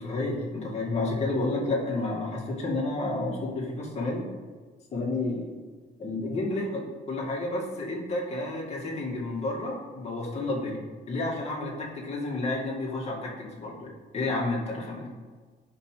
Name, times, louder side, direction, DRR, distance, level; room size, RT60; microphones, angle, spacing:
voice 1, 0.0-4.2 4.9-5.5 6.0-15.1, left 2 dB, 35° left, -4 dB, 2.2 m, -31 dB
5.4 x 5.3 x 6.6 m, 1.4 s
cardioid pair, 130°, 19 cm